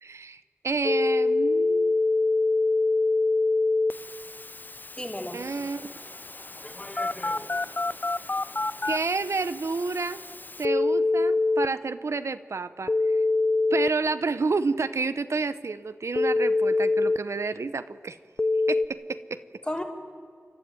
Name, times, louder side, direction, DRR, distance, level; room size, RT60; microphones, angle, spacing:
voice 1, 0.0-2.0 5.3-5.9 8.8-10.2 10.6-12.9 13.7-18.2 18.7-19.4, right 4 dB, 85° right, 12 dB, 0.8 m, -30 dB
Telephone, 0.8-11.7 12.9-13.9 16.2-17.2 18.4-18.9, left 3 dB, 40° left, 0.6 m, -25 dB
voice 2, 5.0-5.4 6.6-7.5 19.6-19.8, left 1 dB, 20° left, 2 dB, 3.1 m, -35 dB
sound 1, 5.4-10.5, left 1 dB, 60° left, 6.6 m, -51 dB
30.0 x 12.5 x 9.6 m, 2.1 s
wide cardioid pair, 65°, 5 cm